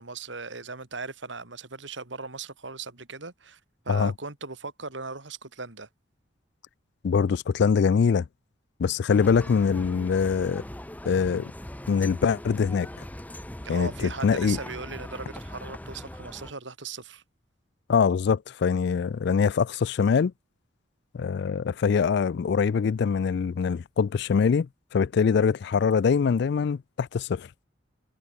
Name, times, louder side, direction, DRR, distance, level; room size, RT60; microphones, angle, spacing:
voice 1, 0.0-3.6 3.8-5.9 13.6-17.2, right 4 dB, 70° right, 2.7 m, -38 dB
voice 2, 7.0-8.3 8.8-10.6 11.1-11.5 11.9-12.9 13.7-13.9 14.2-14.6 17.9-20.3 21.1-27.5, left 6 dB, 60° left, 0.4 m, -23 dB
sound 1, 9.1-16.5, left 1 dB, 10° left, 1.0 m, -40 dB
head